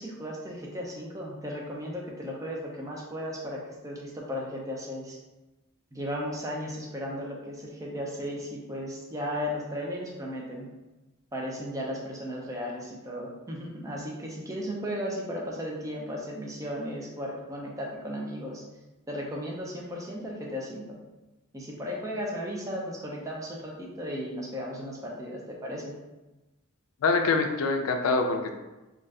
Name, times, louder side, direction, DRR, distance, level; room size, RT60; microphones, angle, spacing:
voice 1, 0.0-5.2 5.9-10.7 11.3-18.6 19.1-21.0 21.5-26.0, equal, 15° right, -2 dB, 0.4 m, -35 dB
voice 2, 27.0-28.5, left 3 dB, 85° left, 5 dB, 0.4 m, -25 dB
2.6 x 2.3 x 3.3 m, 1.1 s
head